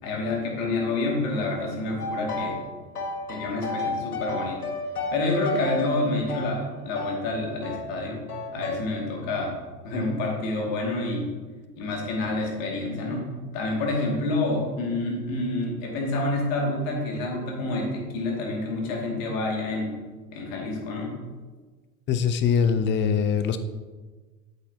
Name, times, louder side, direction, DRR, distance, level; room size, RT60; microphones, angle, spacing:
voice 1, 0.0-2.6 3.3-4.6 5.1-8.2 8.5-9.5 9.8-11.3 11.8-13.3 13.5-20.0 20.3-21.2, left 2 dB, 60° left, -1 dB, 2.4 m, -28 dB
sound 1, 2.0-2.6 2.9-7.2 7.6-7.9 8.3-8.9, left 2 dB, 85° left, 1.3 m, -32 dB
voice 2, 22.1-23.6, left 7 dB, 25° left, 10 dB, 0.6 m, -22 dB
8.2 x 8.1 x 2.9 m, 1.3 s
figure-of-eight pair, 80°, 45 cm